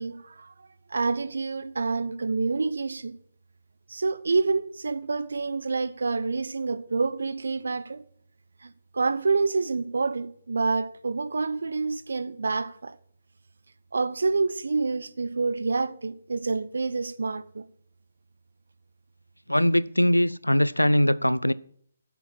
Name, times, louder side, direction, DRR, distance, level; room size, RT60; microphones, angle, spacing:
voice 1, 0.0-3.2 3.9-8.0 8.6-13.0 13.9-17.6, right 4 dB, 65° right, 0.7 m, -28 dB
voice 2, 19.5-21.5, equal, 90° left, 0.4 m, -21 dB
8.5 x 6.9 x 8.6 m
figure-of-eight pair, 140°, 0 cm